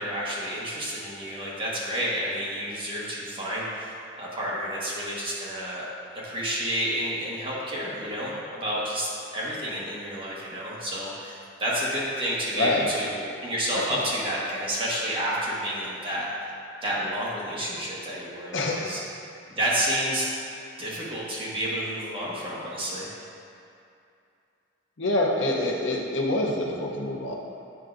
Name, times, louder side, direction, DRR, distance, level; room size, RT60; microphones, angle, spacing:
voice 1, 0.0-5.9 6.2-16.2 16.8-19.0 19.5-20.3 20.8-23.1, equal, 30° right, -7 dB, 1.3 m, -30 dB
voice 2, 12.5-12.9 13.7-14.1 18.5-19.0 25.0-27.4, left 2 dB, 65° left, -1 dB, 0.7 m, -26 dB
9.1 x 4.6 x 2.5 m, 2.6 s
head